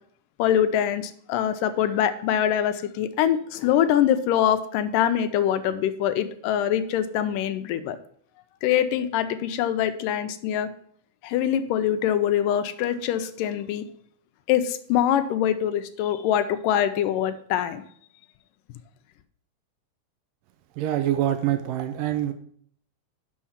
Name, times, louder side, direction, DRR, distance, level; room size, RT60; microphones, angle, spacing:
voice 1, 0.4-8.0 8.6-10.7 11.2-13.9 14.5-17.8, left 10 dB, 85° left, 9 dB, 2.2 m, -24 dB
voice 2, 20.8-22.3, right 12 dB, 85° right, 7 dB, 2.3 m, -25 dB
6.3 x 5.7 x 7.2 m, 0.62 s
omnidirectional pair, 4.0 m